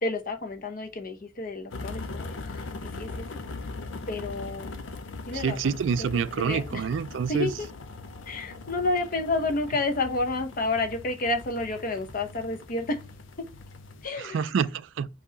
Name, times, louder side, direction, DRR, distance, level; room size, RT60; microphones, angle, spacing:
voice 1, 0.0-3.3 4.1-4.8 5.3-6.1 6.4-6.8 7.3-7.7 8.3-13.0 13.4-13.5 14.0-14.4, left 2 dB, 50° left, 0.8 m, -30 dB
sound 1, 1.7-14.1, left 3 dB, 85° left, 0.6 m, -40 dB
voice 2, 5.3-7.5 14.2-15.1, right 6 dB, 75° right, 0.3 m, -27 dB
4.5 x 2.9 x 4.0 m
head